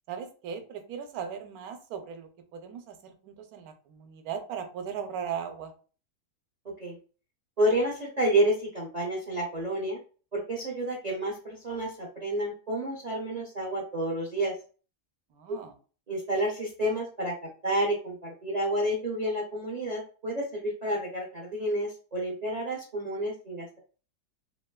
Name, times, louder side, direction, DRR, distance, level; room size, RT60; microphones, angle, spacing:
voice 1, 0.1-2.3 2.6-2.9 3.2-5.7 15.4-15.7, right 7 dB, 75° right, 6 dB, 1.0 m, -37 dB
voice 2, 7.6-10.0 10.3-14.5 16.1-23.8, right 1 dB, 55° right, -3 dB, 0.4 m, -30 dB
3.1 x 2.8 x 2.2 m, 0.38 s
omnidirectional pair, 1.7 m